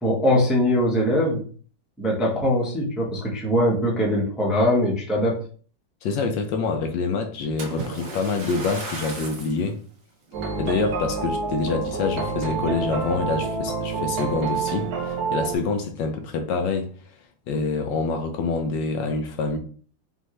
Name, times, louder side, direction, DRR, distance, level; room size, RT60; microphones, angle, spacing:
voice 1, 0.0-1.4 2.0-5.4, left 1 dB, ahead, 0.7 m, -21 dB
voice 2, 6.0-9.8 10.6-16.9 17.5-19.6, left 4 dB, 75° left, 1.2 m, -26 dB
Splash splatter, 7.6-9.6 10.3-10.5 11.1-11.2, right 2 dB, 75° right, 1.6 m, -35 dB
sound 1, 10.3-15.6, right 4 dB, 60° right, 1.3 m, -28 dB
5.4 x 2.6 x 3.1 m
omnidirectional pair, 2.1 m